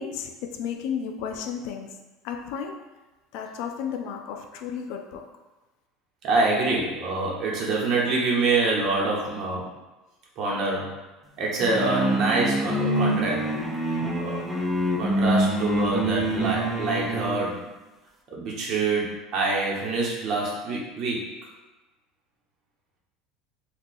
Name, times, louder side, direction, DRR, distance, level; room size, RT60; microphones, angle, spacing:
voice 1, 0.0-2.0 2.2-2.8 3.3-5.3, left 7 dB, 70° left, 5 dB, 0.3 m, -33 dB
voice 2, 6.2-9.7 10.4-11.0 11.4-13.5 14.2-14.4 15.0-17.6 18.3-21.3, right 3 dB, 45° right, -4 dB, 0.9 m, -26 dB
sound 1, 11.6-17.5, right 1 dB, 5° right, 0.4 m, -26 dB
2.6 x 2.3 x 3.9 m, 1.1 s
cardioid pair, 140°, 0 cm